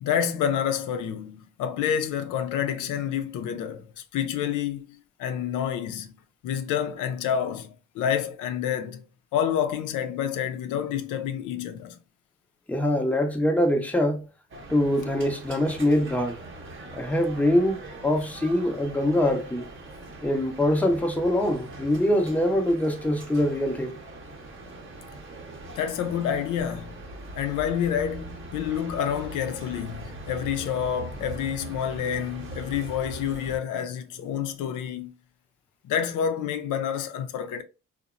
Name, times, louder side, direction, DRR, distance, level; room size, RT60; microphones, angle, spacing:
voice 1, 0.0-6.1 6.4-9.0 9.3-12.0 25.8-27.1 27.4-35.1 35.8-37.6, left 8 dB, 85° left, 0.5 m, -28 dB
voice 2, 12.7-14.3 14.7-16.4 16.9-19.7 20.2-24.0, left 1 dB, 5° left, 0.6 m, -24 dB
sound 1, 14.5-33.6, right 2 dB, 40° right, 0.8 m, -41 dB
2.7 x 2.1 x 2.4 m
cardioid pair, 90°, 30 cm